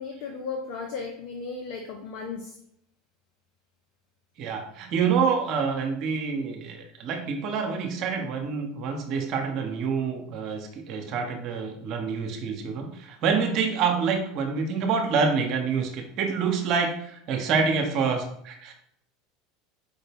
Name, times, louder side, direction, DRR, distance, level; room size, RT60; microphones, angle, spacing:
voice 1, 0.0-2.6, left 4 dB, 60° left, 3 dB, 0.5 m, -35 dB
voice 2, 4.4-18.7, right 5 dB, 55° right, 3 dB, 0.7 m, -27 dB
4.8 x 2.1 x 3.4 m, 0.72 s
hypercardioid pair, 80°, 0 cm